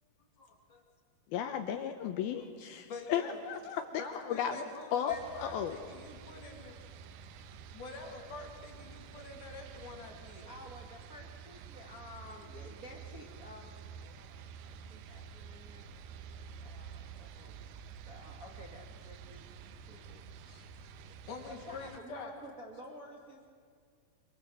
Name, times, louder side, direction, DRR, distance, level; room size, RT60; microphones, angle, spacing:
voice 1, 1.3-3.8 4.1-4.5 4.9-5.8, left 9 dB, 75° left, 7 dB, 2.6 m, -34 dB
voice 2, 2.7-3.4 4.0-6.8 7.7-10.5 17.4-17.5 20.5-20.7 21.0-22.3, left 3 dB, 55° left, 1 dB, 4.0 m, -46 dB
sound 1, 5.1-22.0, right 6 dB, 80° right, 2.8 m, -50 dB
voice 3, 10.4-16.2 16.6-17.6 17.9-19.5 19.8-20.5 21.4-23.5, equal, 30° right, -1 dB, 1.7 m, -52 dB
24.5 x 23.5 x 7.8 m, 2.1 s
omnidirectional pair, 4.7 m